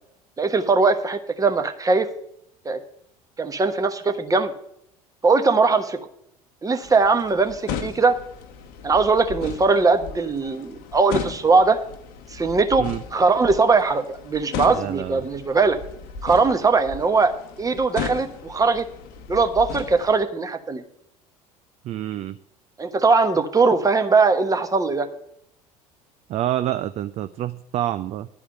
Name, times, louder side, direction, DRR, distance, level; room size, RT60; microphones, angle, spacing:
voice 1, 0.4-2.1 2.6-2.8 3.4-4.5 5.2-6.0 6.6-8.1 8.8-11.8 12.3-12.8 13.1-15.8 16.2-17.3 17.6-18.9 19.3-20.8 22.8-25.1, right 4 dB, 20° right, 8 dB, 1.2 m, -20 dB
sound 1, 6.8-20.2, left 7 dB, 55° left, 1.0 m, -36 dB
voice 2, 14.7-15.2 21.8-22.4 26.3-28.3, right 12 dB, 35° right, 13 dB, 0.4 m, -27 dB
11.5 x 4.9 x 8.2 m, 0.74 s
figure-of-eight pair, 65°, 19 cm